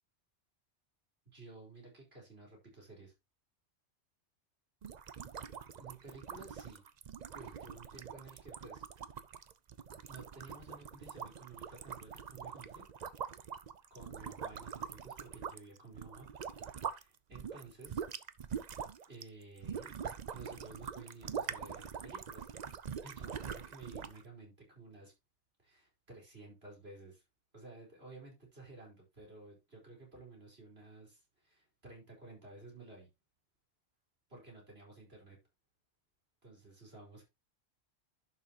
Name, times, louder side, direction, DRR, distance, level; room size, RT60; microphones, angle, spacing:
voice 1, 1.3-3.1 5.8-6.8 7.3-8.8 10.1-12.8 13.9-18.0 19.1-20.0 20.3-22.5 23.0-25.1 25.6-27.2 27.5-33.1 34.3-35.4 36.4-37.2, right 3 dB, 60° right, 4.9 m, -53 dB
sound 1, 4.8-17.0 17.3-24.2, right 7 dB, 45° right, 0.7 m, -44 dB
11.0 x 6.3 x 3.0 m
omnidirectional pair, 1.2 m